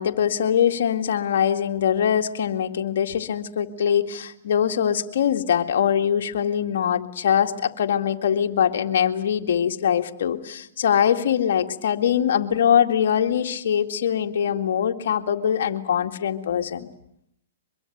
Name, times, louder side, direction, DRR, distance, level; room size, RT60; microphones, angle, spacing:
voice 1, 0.0-16.9, left 8 dB, 65° left, 5 dB, 2.1 m, -22 dB
24.0 x 22.5 x 9.3 m, 0.75 s
hypercardioid pair, 125°, 0 cm